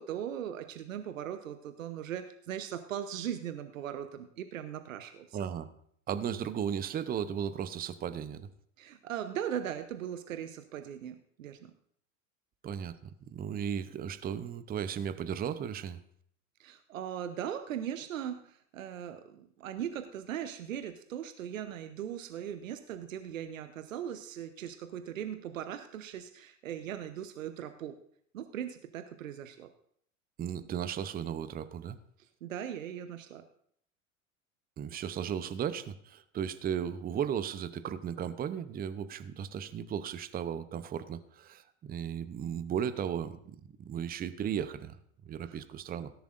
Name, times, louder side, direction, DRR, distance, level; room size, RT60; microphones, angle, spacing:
voice 1, 0.0-5.4 8.8-11.7 16.6-28.0 28.3-29.7 32.4-33.4 45.5-45.6, right 9 dB, 80° right, 9 dB, 0.9 m, -39 dB
voice 2, 5.3-5.7 6.1-8.5 12.6-16.0 30.4-32.0 34.8-45.0 45.2-46.1, right 8 dB, 25° right, 13 dB, 0.7 m, -35 dB
17.5 x 10.5 x 2.5 m, 0.66 s
hypercardioid pair, 85°, 39 cm